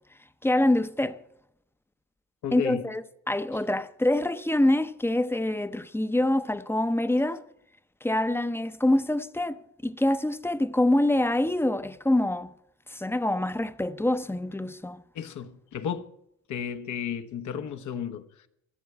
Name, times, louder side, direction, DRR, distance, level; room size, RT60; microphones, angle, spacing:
voice 1, 0.4-1.2 2.5-7.4 8.0-12.5 12.9-15.0, left 1 dB, 10° left, 0.6 m, -25 dB
voice 2, 2.4-2.9 15.1-16.1 16.5-18.5, left 8 dB, 70° left, 1.1 m, -33 dB
14.5 x 6.8 x 9.4 m
cardioid pair, 90°, 30 cm